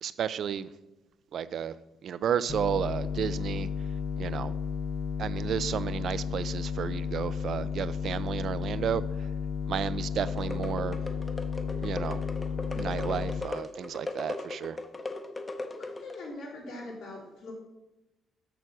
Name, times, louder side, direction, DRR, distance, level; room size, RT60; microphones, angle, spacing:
voice 1, 0.0-0.7 1.3-1.7 2.0-3.7 4.2-4.5 5.2-9.0 9.7-11.0 11.8-12.2 12.7-14.8, right 8 dB, 65° right, 15 dB, 0.4 m, -32 dB
sound 1, 2.5-13.4, left 6 dB, 50° left, 0.4 m, -33 dB
sound 2, 10.2-16.3, left 2 dB, 25° left, 0.9 m, -38 dB
voice 2, 15.7-17.5, left 2 dB, 85° left, -4 dB, 3.4 m, -42 dB
6.9 x 6.3 x 6.0 m, 1.0 s
cardioid pair, 90°, 0 cm